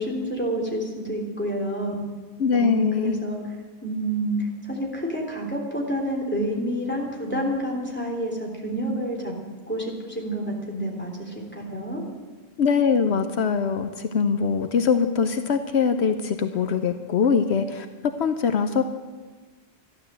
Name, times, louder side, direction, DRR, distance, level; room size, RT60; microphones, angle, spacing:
voice 1, 0.0-1.9 2.5-3.4 3.8-4.4 4.7-9.3 9.7-12.0, right 1 dB, 10° left, -1 dB, 3.3 m, -28 dB
voice 2, 2.4-3.2 12.6-17.9 18.2-18.8, left 6 dB, 75° left, 8 dB, 1.0 m, -22 dB
13.5 x 12.0 x 7.6 m, 1.3 s
omnidirectional pair, 1.1 m